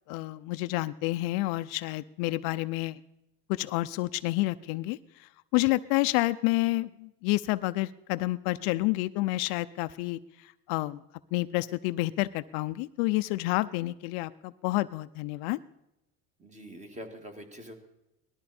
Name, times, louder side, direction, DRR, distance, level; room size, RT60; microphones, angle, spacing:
voice 1, 0.1-3.0 3.5-11.0 11.3-15.6, left 19 dB, 65° left, 12 dB, 0.6 m, -29 dB
voice 2, 16.4-17.7, equal, 15° right, 5 dB, 2.1 m, -44 dB
19.0 x 13.0 x 4.3 m, 0.90 s
supercardioid pair, 130°, 42 cm